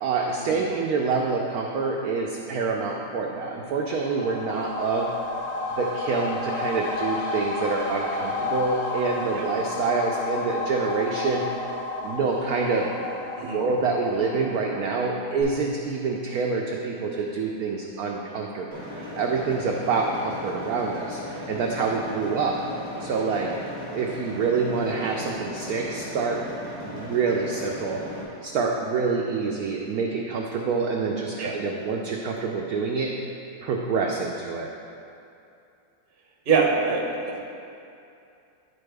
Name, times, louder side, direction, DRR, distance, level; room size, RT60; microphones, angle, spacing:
voice 1, 0.0-5.1 5.8-11.5 12.0-13.3 13.5-22.6 23.0-26.4 26.8-28.0 28.4-33.1 33.6-34.7, right 4 dB, 75° right, 0 dB, 0.8 m, -27 dB
sound 1, 3.6-15.1 15.4-15.5, left 3 dB, 75° left, 1.7 m, -32 dB
sound 2, 18.7-28.2, left 1 dB, 50° left, 2.3 m, -37 dB
voice 2, 36.5-37.0, right 5 dB, 50° right, -1 dB, 0.7 m, -22 dB
11.0 x 4.2 x 3.3 m, 2.6 s
omnidirectional pair, 2.0 m